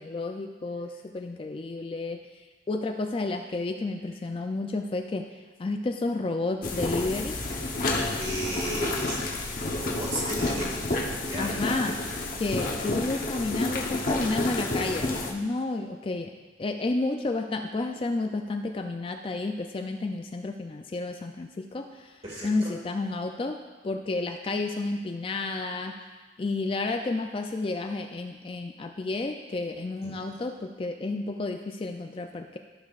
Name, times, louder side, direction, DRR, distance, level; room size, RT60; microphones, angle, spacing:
voice 1, 0.0-2.2 2.7-5.3 5.6-7.4 11.4-12.0 12.4-16.3 16.6-22.2 22.4-23.6 23.8-26.0 26.4-32.6, left 2 dB, 30° left, 5 dB, 0.3 m, -31 dB
sound 1, 6.6-15.3, left 2 dB, 50° left, 0.9 m, -30 dB
voice 2, 8.2-9.5 9.8-11.5 11.9-12.0 22.2-22.8 30.0-30.1, right 1 dB, 35° right, -4 dB, 2.0 m, -35 dB
14.5 x 6.6 x 2.4 m, 1.3 s
head